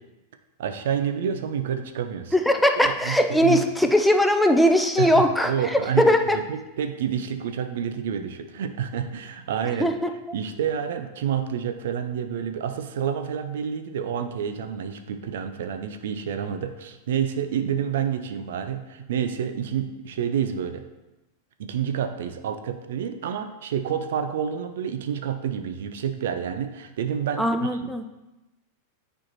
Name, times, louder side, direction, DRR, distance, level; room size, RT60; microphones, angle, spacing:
voice 1, 0.6-2.4 2.9-3.6 5.0-9.9 10.3-20.8 21.6-28.1, right 8 dB, 60° right, 7 dB, 0.5 m, -29 dB
voice 2, 2.3-6.4 9.8-10.1 27.4-28.0, left 1 dB, 5° left, 6 dB, 0.5 m, -20 dB
9.6 x 4.4 x 3.0 m, 1.0 s
figure-of-eight pair, 90°, 0 cm